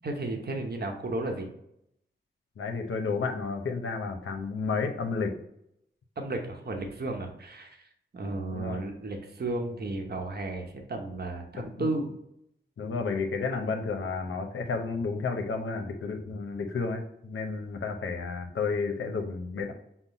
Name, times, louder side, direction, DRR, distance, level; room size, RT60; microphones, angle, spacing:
voice 1, 0.0-1.5 6.2-7.9 8.1-12.1, right 2 dB, 55° right, 3 dB, 0.9 m, -33 dB
voice 2, 2.6-5.4 8.5-8.9 11.7-11.9 12.8-19.7, left 4 dB, 90° left, 5 dB, 0.7 m, -31 dB
5.7 x 2.1 x 3.9 m, 0.77 s
cardioid pair, 60°, 20 cm